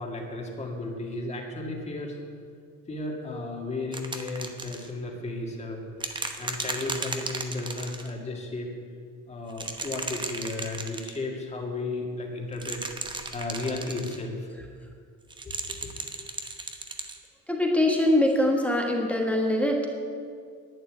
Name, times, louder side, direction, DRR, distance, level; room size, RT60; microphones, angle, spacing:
voice 1, 0.0-2.2 2.9-8.7 9.3-12.8 13.3-14.5 15.4-15.9, left 2 dB, 20° left, 1 dB, 2.0 m, -34 dB
sound 1, 3.9-4.9 6.0-8.1 9.5-11.2 12.5-14.2 15.3-17.2 18.3-18.4, right 3 dB, 15° right, 0.9 m, -35 dB
voice 2, 17.5-19.9, left 1 dB, 5° left, 0 dB, 1.2 m, -23 dB
11.0 x 8.5 x 9.5 m, 2.2 s
cardioid pair, 165°, 32 cm